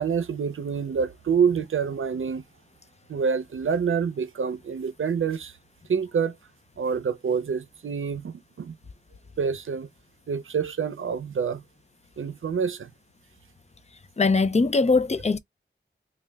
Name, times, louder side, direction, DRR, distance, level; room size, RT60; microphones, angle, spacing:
voice 1, 0.0-2.4 3.1-5.5 5.9-6.3 6.8-8.7 9.4-9.9 10.3-11.6 12.2-12.9, right 6 dB, 90° right, 0.5 m, -27 dB
voice 2, 14.2-15.4, left 3 dB, 35° left, 0.4 m, -21 dB
3.2 x 2.3 x 3.3 m
wide cardioid pair, 80°, 20 cm